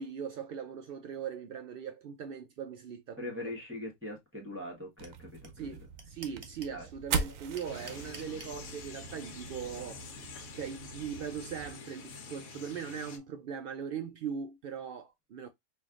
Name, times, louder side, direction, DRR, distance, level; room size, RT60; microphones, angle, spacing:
voice 1, 0.0-3.5 5.6-10.1 10.5-15.5, right 7 dB, 90° right, 0.4 m, -40 dB
voice 2, 3.2-5.7 6.7-7.2, left 1 dB, 10° right, 1.0 m, -42 dB
sound 1, 5.0-5.1 5.4-5.5 5.7-6.8 7.1-8.5, right 3 dB, 35° right, 0.5 m, -46 dB
sound 2, 5.0-11.7, right 5 dB, 70° right, 1.0 m, -40 dB
sound 3, 7.6-13.2, left 4 dB, 75° left, 1.3 m, -47 dB
4.5 x 2.6 x 2.4 m
omnidirectional pair, 1.5 m